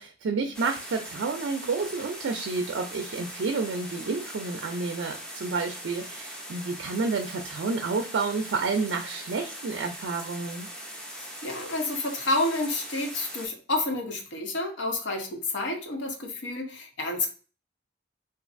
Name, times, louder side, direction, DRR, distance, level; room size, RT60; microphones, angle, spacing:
voice 1, 0.0-10.7, right 4 dB, 85° right, 4 dB, 0.4 m, -30 dB
sound 1, 0.5-13.5, equal, 5° left, 0.5 m, -41 dB
voice 2, 11.2-17.3, left 2 dB, 75° left, 3 dB, 0.8 m, -29 dB
3.1 x 2.4 x 2.5 m, 0.37 s
head